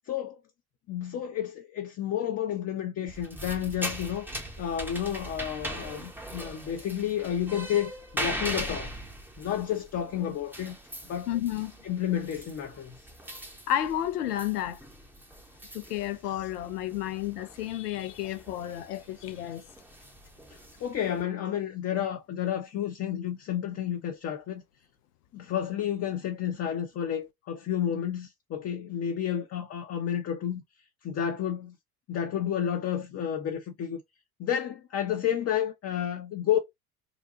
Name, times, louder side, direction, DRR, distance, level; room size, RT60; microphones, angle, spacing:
voice 1, 0.9-4.3 4.6-8.9 9.4-10.8 11.1-11.3 11.8-13.0 20.8-24.6 25.3-30.6 31.0-31.7 32.1-34.0 34.4-36.6, left 10 dB, 35° left, 0.7 m, -31 dB
sound 1, 3.1-21.2, right 1 dB, 5° right, 0.8 m, -40 dB
voice 2, 11.3-11.7 13.7-14.8 15.7-19.7, left 12 dB, 80° left, 0.7 m, -31 dB
3.9 x 2.2 x 2.7 m
hypercardioid pair, 70°, 46 cm